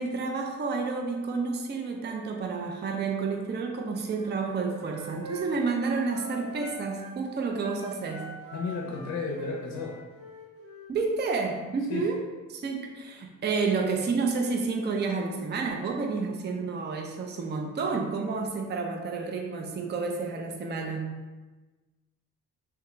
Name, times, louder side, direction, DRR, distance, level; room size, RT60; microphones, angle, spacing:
voice 1, 0.0-8.3 10.9-12.2 12.5-21.1, right 4 dB, 30° right, 2 dB, 0.5 m, -30 dB
Wind instrument woodwind instrument, 4.1-7.2 7.5-11.0, right 1 dB, 85° right, 1.3 m, -43 dB
voice 2, 8.5-10.0 11.9-12.1, left 4 dB, 55° left, 0 dB, 0.5 m, -33 dB
3.4 x 2.3 x 3.0 m, 1.2 s
cardioid pair, 65°, 34 cm